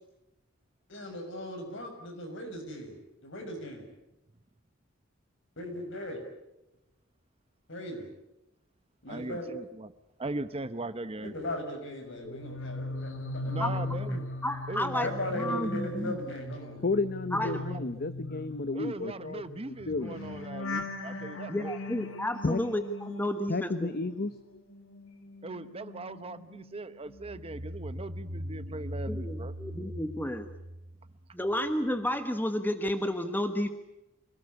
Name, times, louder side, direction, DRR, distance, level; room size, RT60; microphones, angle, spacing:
voice 1, 0.9-3.0 3.2-3.8 5.6-6.2 7.7-8.1 9.0-9.5 11.2-14.2 15.0-16.8, left 1 dB, 65° left, 4 dB, 6.4 m, -38 dB
voice 2, 9.1-9.9 10.2-11.3 13.5-14.3 14.7-15.1 17.4-18.0 18.7-21.7 25.4-29.5, right 2 dB, 30° right, 13 dB, 0.9 m, -39 dB
voice 3, 12.0-12.4 16.8-20.2 22.4-22.6 23.5-24.6, left 3 dB, 50° left, 12 dB, 0.8 m, -33 dB
sound 1, 12.1-24.4 24.7-26.8 27.1-27.5, left 2 dB, 80° left, 2.5 m, -39 dB
voice 4, 14.4-16.2 17.3-17.6 21.5-23.7 29.1-30.5 31.3-33.7, left 1 dB, 10° left, 8 dB, 1.2 m, -31 dB
sound 2, 27.1-31.7, equal, 85° right, 2.2 m, -40 dB
25.5 x 18.5 x 9.7 m, 0.93 s
head